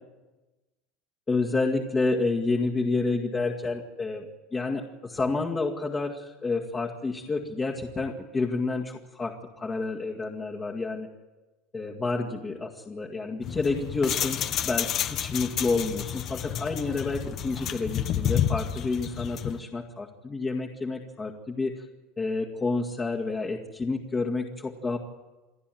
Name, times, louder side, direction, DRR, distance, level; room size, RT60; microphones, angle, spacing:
voice 1, 1.3-11.1 11.7-21.8 22.2-25.0, left 3 dB, 20° left, 1 dB, 2.0 m, -29 dB
sound 1, 13.4-19.6, left 10 dB, 45° left, 1.3 m, -30 dB
28.5 x 11.0 x 9.3 m, 1.2 s
supercardioid pair, 115°, 0 cm